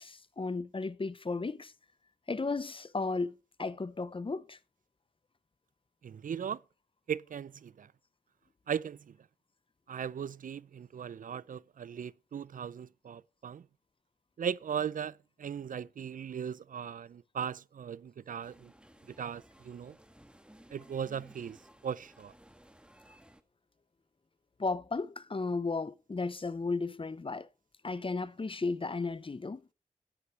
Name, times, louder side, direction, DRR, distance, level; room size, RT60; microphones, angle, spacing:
voice 1, 0.0-1.7 2.3-3.3 3.6-4.6 24.6-27.5 27.8-29.6, left 3 dB, 35° left, 0.8 m, -34 dB
voice 2, 6.0-6.6 7.1-7.9 8.7-9.2 9.9-13.7 14.4-18.7 19.1-20.0 20.7-21.6 21.8-22.3, right 8 dB, 65° right, 0.5 m, -38 dB
sound 1, 18.4-23.4, equal, 5° right, 1.5 m, -58 dB
12.5 x 9.6 x 3.2 m
cardioid pair, 45°, 15 cm